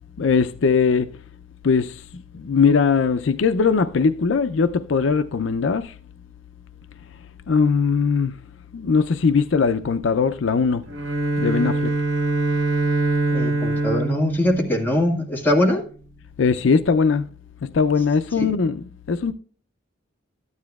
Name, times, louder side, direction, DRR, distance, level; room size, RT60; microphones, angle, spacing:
voice 1, 0.2-1.1 1.6-5.9 7.5-8.4 8.7-10.8 11.4-11.9 16.4-17.2 17.6-19.3, left 5 dB, 75° left, 0.5 m, -20 dB
Bowed string instrument, 10.8-15.5, right 3 dB, 75° right, 1.0 m, -24 dB
voice 2, 13.3-15.8 18.4-18.5, left 1 dB, 10° left, 1.7 m, -22 dB
13.0 x 9.5 x 2.3 m
head